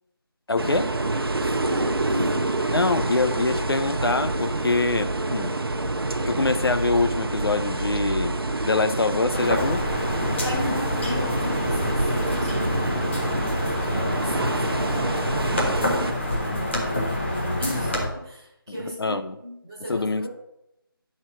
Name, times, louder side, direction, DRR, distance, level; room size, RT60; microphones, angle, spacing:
voice 1, 0.5-0.9 2.7-5.6 6.2-8.4 8.6-9.8 10.2-10.3 19.0-19.4 19.9-20.3, left 3 dB, 80° left, 10 dB, 0.7 m, -24 dB
sound 1, 0.6-16.1, right 2 dB, 80° right, 1.0 m, -27 dB
voice 2, 1.3-2.5 10.3-13.2 13.8-20.3, equal, 10° right, -7 dB, 1.6 m, -35 dB
sound 2, 9.3-18.1, left 1 dB, 30° left, 1.4 m, -27 dB
9.5 x 4.4 x 6.0 m, 0.85 s
figure-of-eight pair, 180°, 12 cm